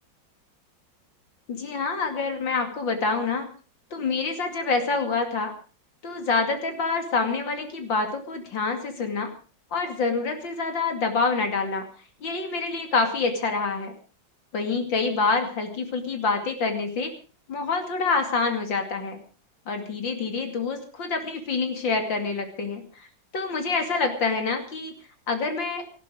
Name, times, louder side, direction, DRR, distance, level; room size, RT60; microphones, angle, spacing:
voice 1, 1.5-3.5 3.9-5.5 6.0-9.3 9.7-11.9 12.2-13.9 14.5-17.1 17.5-19.2 19.7-23.1 23.3-24.9 25.3-25.8, left 4 dB, 85° left, 6 dB, 3.3 m, -26 dB
18.5 x 14.5 x 5.1 m, 0.37 s
omnidirectional pair, 2.0 m